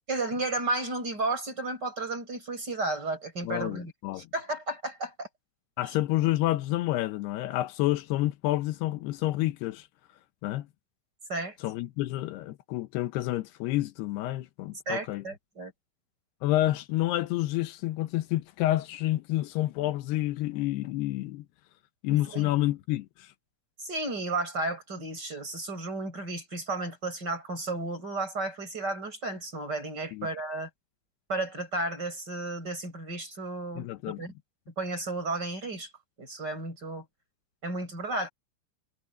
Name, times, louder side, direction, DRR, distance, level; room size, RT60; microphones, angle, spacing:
voice 1, 0.1-5.3 5.8-5.9 11.3-11.6 14.9-15.7 22.1-22.5 23.8-30.7 31.3-34.3 34.8-35.9 36.2-37.0 37.6-38.3, right 2 dB, 25° right, 8.2 m, -33 dB
voice 2, 3.4-4.3 5.8-9.9 10.4-10.7 11.6-15.2 16.4-21.5 22.0-23.3 30.1-30.3 33.8-34.2, left 16 dB, 80° left, 2.9 m, -29 dB
omnidirectional pair, 4.7 m